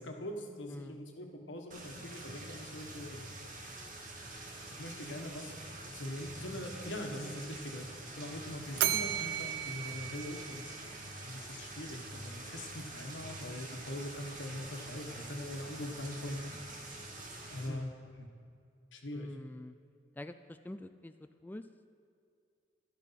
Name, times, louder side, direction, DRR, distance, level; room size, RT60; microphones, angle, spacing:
voice 1, 0.0-3.2 4.8-5.6 5.9-7.9 8.2-10.7 11.2-16.4 17.5-17.9 18.2-18.3 18.9-19.3, left 1 dB, 85° left, 3 dB, 1.5 m, -42 dB
voice 2, 0.7-1.1 17.7-18.1 19.1-19.8 20.2-21.7, left 1 dB, 10° left, 9 dB, 0.3 m, -46 dB
sound 1, 1.7-17.7, right 2 dB, 45° right, 1.9 m, -46 dB
Bell, 8.8-11.1, right 11 dB, 70° right, 0.6 m, -35 dB
12.5 x 12.0 x 5.8 m, 2.4 s
head